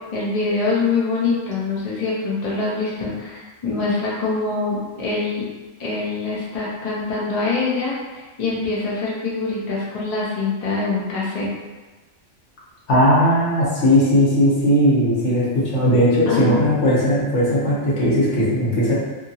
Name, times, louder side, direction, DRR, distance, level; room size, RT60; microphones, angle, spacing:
voice 1, 0.1-5.5 5.8-8.0 8.4-11.5 16.3-16.6, left 3 dB, 40° left, -6 dB, 0.6 m, -24 dB
voice 2, 12.9-18.9, equal, 65° left, -7 dB, 1.2 m, -17 dB
2.8 x 2.7 x 2.7 m, 1.2 s
omnidirectional pair, 1.3 m